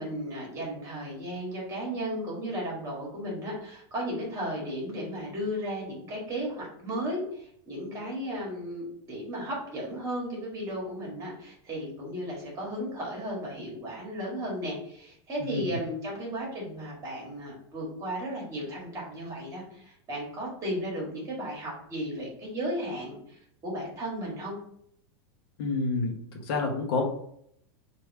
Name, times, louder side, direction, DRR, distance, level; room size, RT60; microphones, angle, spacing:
voice 1, 0.0-24.5, equal, 25° right, -3 dB, 1.6 m, -35 dB
voice 2, 25.6-26.2 26.5-27.0, left 3 dB, 65° left, 2 dB, 0.9 m, -28 dB
3.3 x 2.6 x 4.5 m, 0.69 s
supercardioid pair, 155°, 14 cm